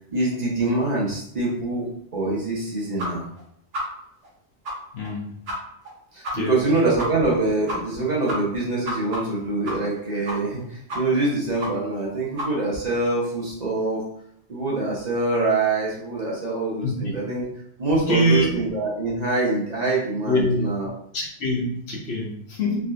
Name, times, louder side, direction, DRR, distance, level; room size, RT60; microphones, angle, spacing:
voice 1, 0.1-3.2 6.1-14.0 14.5-17.4 17.8-20.9, right 2 dB, 40° right, -5 dB, 0.7 m, -25 dB
sound 1, 3.0-3.1 3.4-3.5 3.7-3.8 4.2-4.3 4.6-4.7 5.0-5.1 5.5-5.6 5.8-5.9 6.2-6.3 6.6-6.7 7.0-7.1 7.4-7.5 7.7-8.0 8.3-10.0 10.3-10.6 10.9-11.3 11.6-11.7 12.0-12.1 12.4-12.5, equal, 60° right, 1.2 m, -30 dB
voice 2, 4.9-5.3 6.3-6.6 16.8-17.1 17.9-18.6 20.3-20.6 21.1-22.9, equal, 65° left, -1 dB, 0.9 m, -24 dB
3.2 x 2.7 x 2.4 m, 0.71 s
omnidirectional pair, 1.2 m